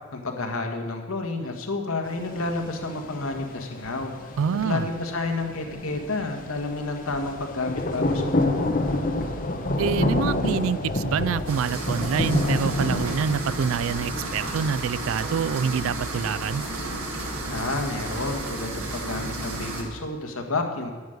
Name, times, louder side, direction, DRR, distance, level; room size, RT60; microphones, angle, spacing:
voice 1, 0.1-4.3 4.6-8.7 17.5-20.9, left 3 dB, 75° left, 4 dB, 1.5 m, -30 dB
sound 1, 2.0-18.7, left 1 dB, 40° left, 0.9 m, -30 dB
voice 2, 4.4-4.9 9.8-16.6, right 7 dB, 65° right, 19 dB, 0.3 m, -26 dB
sound 2, 11.2-19.8, right 1 dB, 10° right, 2.2 m, -41 dB
sound 3, 11.5-19.8, right 2 dB, 85° right, 1.9 m, -33 dB
9.4 x 9.4 x 6.5 m, 1.4 s
head